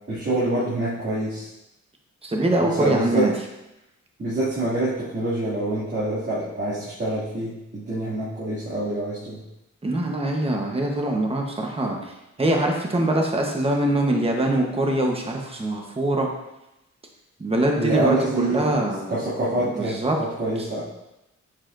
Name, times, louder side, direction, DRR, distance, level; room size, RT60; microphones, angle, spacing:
voice 1, 0.1-1.5 2.6-3.3 4.2-9.4 17.8-18.7 19.1-20.8, right 1 dB, 40° right, -11 dB, 2.4 m, -26 dB
voice 2, 2.2-3.3 9.8-12.1 12.4-16.3 17.4-19.1 19.6-20.2, right 1 dB, 20° right, 1 dB, 1.0 m, -23 dB
7.5 x 6.6 x 2.6 m, 0.91 s
wide cardioid pair, 115°, 29 cm